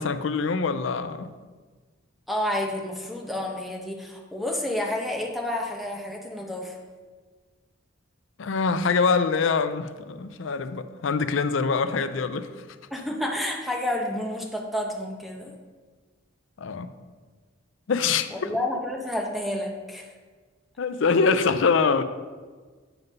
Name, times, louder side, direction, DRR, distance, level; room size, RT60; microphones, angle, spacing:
voice 1, 0.0-1.3 8.4-12.5 16.6-16.9 17.9-18.6 20.8-22.0, left 5 dB, 70° left, 11 dB, 0.5 m, -24 dB
voice 2, 2.3-6.8 12.9-15.5 18.3-20.1, left 1 dB, ahead, 0 dB, 0.9 m, -30 dB
9.1 x 3.9 x 5.3 m, 1.4 s
head